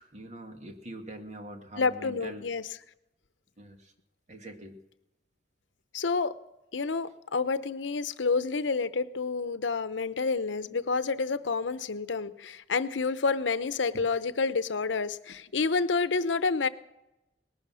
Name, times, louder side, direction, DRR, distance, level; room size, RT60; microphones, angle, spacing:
voice 1, 0.0-2.5 3.6-3.9 4.3-4.8 10.7-10.8, right 1 dB, 40° right, 5 dB, 1.9 m, -44 dB
voice 2, 1.8-2.6 5.9-6.3 6.7-16.7, left 4 dB, 85° left, 14 dB, 0.7 m, -29 dB
19.5 x 11.5 x 6.3 m, 0.90 s
head